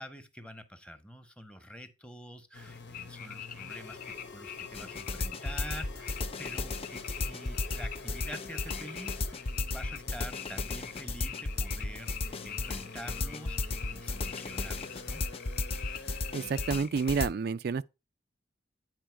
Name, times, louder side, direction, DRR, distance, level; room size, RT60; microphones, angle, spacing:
voice 1, 0.0-15.2, equal, 5° left, 1.0 m, -47 dB
sound 1, 2.5-16.7, left 3 dB, 70° left, 1.1 m, -48 dB
sound 2, 2.9-17.2, left 9 dB, 50° left, 0.9 m, -44 dB
sound 3, 4.7-17.3, left 3 dB, 30° left, 0.5 m, -34 dB
voice 2, 16.3-17.8, right 5 dB, 60° right, 0.4 m, -29 dB
9.0 x 4.5 x 4.5 m
head